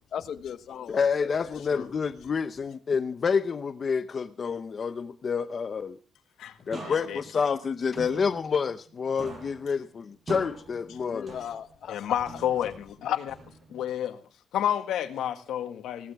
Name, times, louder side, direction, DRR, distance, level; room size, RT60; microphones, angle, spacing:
voice 1, 0.1-1.3 1.8-1.9 11.1-12.1, left 8 dB, 65° left, 1.1 m, -38 dB
voice 2, 0.7-6.0 6.7-11.4, left 5 dB, 40° left, 0.7 m, -28 dB
sound 1, 6.7-8.9 9.2-11.9 12.3-13.9, right 3 dB, 35° right, 6.1 m, -44 dB
voice 3, 6.8-7.2 11.9-13.4 13.7-14.2 14.5-16.1, left 10 dB, 90° left, 1.8 m, -30 dB
20.0 x 17.0 x 3.5 m
cardioid pair, 140°, 0 cm